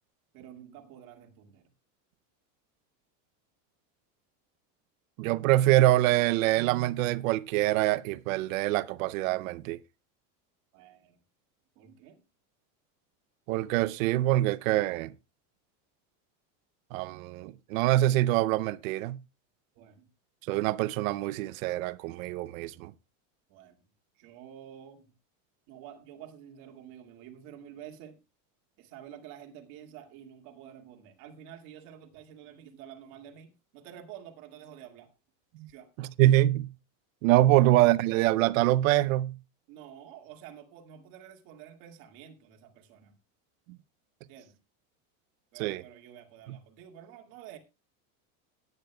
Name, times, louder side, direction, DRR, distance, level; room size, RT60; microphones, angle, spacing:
voice 1, 0.3-1.7 10.7-11.2 11.8-12.2 19.7-20.1 23.5-23.8 24.2-25.1 25.7-28.2 28.8-35.1 35.7-35.9 37.5-37.7 39.7-43.1 44.3-44.6 45.5-47.6, right 10 dB, 50° right, 2.1 m, -49 dB
voice 2, 5.2-9.8 13.5-15.1 16.9-19.2 20.5-22.9 35.6-35.7 36.0-36.7 37.2-39.4 45.6-45.8 46.5-46.6, right 16 dB, 85° right, 0.7 m, -25 dB
17.0 x 9.6 x 2.3 m
cardioid pair, 175°, 40 cm